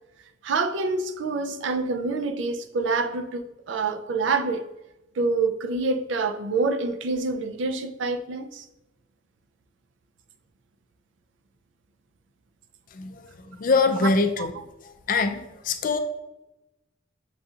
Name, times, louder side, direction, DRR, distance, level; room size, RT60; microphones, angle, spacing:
voice 1, 0.4-4.6 5.2-8.7 14.0-14.1 14.4-14.5, right 3 dB, 80° right, 0.4 m, -26 dB
voice 2, 13.6-14.5 15.1-16.0, left 4 dB, 45° left, 0.4 m, -23 dB
6.7 x 2.4 x 2.7 m
head